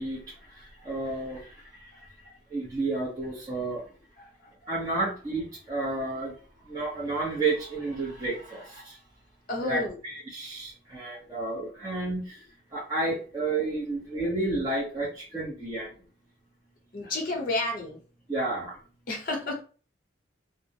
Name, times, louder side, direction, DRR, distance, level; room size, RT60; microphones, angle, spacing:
voice 1, 0.0-1.9 2.5-3.8 4.7-6.4 6.6-9.0 9.6-12.4 12.7-15.9 18.3-18.8, right 2 dB, 20° right, -7 dB, 0.7 m, -31 dB
voice 2, 9.5-10.0 16.9-18.0 19.1-19.6, left 2 dB, 45° left, 1 dB, 0.7 m, -30 dB
2.3 x 2.0 x 2.7 m, 0.38 s
head